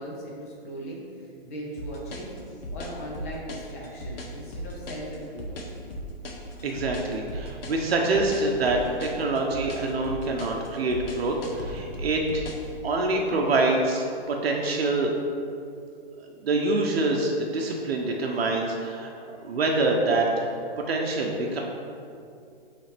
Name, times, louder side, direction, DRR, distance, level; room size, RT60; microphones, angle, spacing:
voice 1, 0.0-2.3 2.7-5.8, right 1 dB, 15° left, -4 dB, 0.6 m, -38 dB
sound 1, 1.8-12.7, left 1 dB, 65° left, 1.0 m, -37 dB
voice 2, 6.6-12.5 12.8-15.1 16.4-19.1 19.4-20.6 20.9-21.6, right 2 dB, 75° right, 0 dB, 0.8 m, -25 dB
8.3 x 3.4 x 3.4 m, 2.4 s
hypercardioid pair, 175°, 31 cm